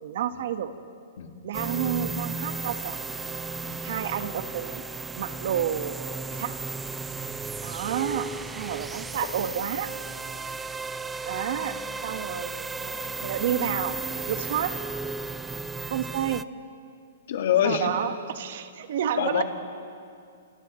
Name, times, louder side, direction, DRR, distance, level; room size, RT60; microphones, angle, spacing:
voice 1, 0.0-0.7 1.4-3.0 3.8-4.8 5.1-6.0 6.3-6.6 7.6-9.9 11.2-11.8 12.0-14.0 14.3-14.7 15.9-16.5 17.6-19.4, right 9 dB, 55° right, 8 dB, 1.4 m, -30 dB
sound 1, 1.5-16.4, right 4 dB, 5° right, 0.4 m, -34 dB
voice 2, 17.3-17.9 19.2-19.4, left 9 dB, 60° left, 4 dB, 2.1 m, -24 dB
28.5 x 28.0 x 3.2 m, 2.4 s
hypercardioid pair, 160°, 0 cm